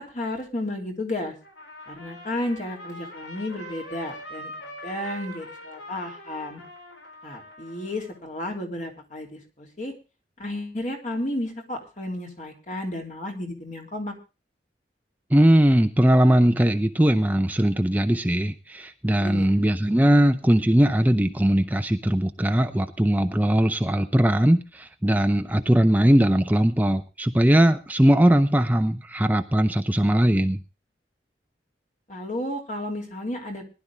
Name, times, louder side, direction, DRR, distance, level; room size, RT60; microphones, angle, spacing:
voice 1, 0.0-1.3 1.9-6.6 7.2-9.9 10.4-14.1 19.2-19.5 32.1-33.6, left 1 dB, 45° left, 3 dB, 3.3 m, -32 dB
Trumpet, 1.4-8.2, left 1 dB, 85° left, 4.7 m, -42 dB
voice 2, 15.3-30.6, right 1 dB, 10° right, 8 dB, 0.6 m, -20 dB
19.5 x 11.5 x 3.6 m, 0.31 s
head